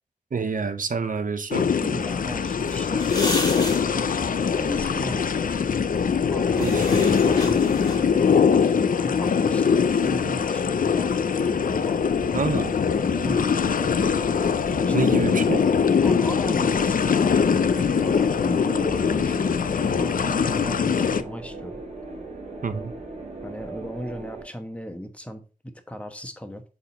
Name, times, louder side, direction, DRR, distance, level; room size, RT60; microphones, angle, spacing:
voice 1, 0.3-1.7 6.6-7.2 12.3-12.7 14.9-15.6 22.6-22.9, right 5 dB, 75° right, 0.7 m, -27 dB
sound 1, 1.5-21.2, left 6 dB, 80° left, 0.4 m, -22 dB
voice 2, 1.8-3.1 4.0-5.3 6.2-6.8 7.2-8.0 8.5-12.5 12.9-13.7 14.8-15.0 16.0-21.8 23.4-26.6, equal, 10° left, 1.1 m, -36 dB
sound 2, 2.1-8.3, left 1 dB, 25° left, 1.7 m, -35 dB
sound 3, 9.1-24.4, right 2 dB, 45° right, 3.2 m, -39 dB
6.9 x 3.7 x 4.0 m
wide cardioid pair, 75°, 14 cm